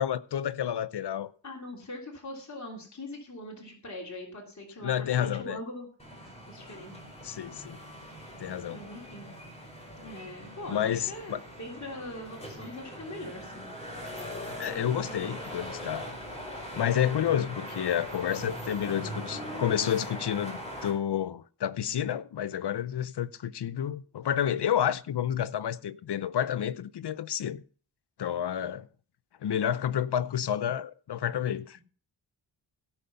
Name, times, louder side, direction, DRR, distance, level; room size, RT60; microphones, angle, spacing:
voice 1, 0.0-1.3 4.8-5.6 7.2-7.8 8.4-8.8 10.7-11.4 14.6-16.1 16.7-20.5 20.8-27.6 28.2-28.9 29.4-31.8, left 10 dB, 65° left, 0.7 m, -30 dB
voice 2, 1.4-5.9 6.5-7.0 8.7-9.3 10.0-13.7 31.5-31.6, left 1 dB, 40° left, 3.2 m, -42 dB
sound 1, 6.0-20.9, equal, 15° left, 4.4 m, -41 dB
16.5 x 5.6 x 5.6 m
wide cardioid pair, 105°, 44 cm